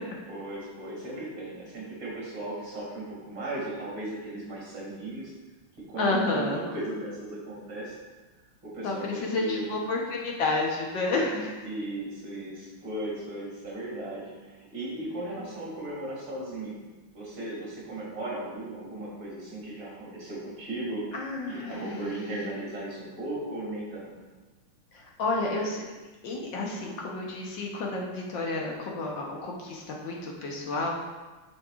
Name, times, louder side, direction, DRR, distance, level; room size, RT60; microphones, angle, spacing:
voice 1, 0.3-5.3 5.9-8.0 8.6-9.7 11.6-16.8 17.1-21.1 21.4-24.1, right 1 dB, 60° right, -4 dB, 3.0 m, -36 dB
voice 2, 6.0-6.6 8.8-11.6 21.1-22.1 24.9-25.8 26.2-30.9, left 2 dB, 65° left, -2 dB, 1.6 m, -30 dB
9.1 x 5.9 x 2.4 m, 1.2 s
omnidirectional pair, 2.4 m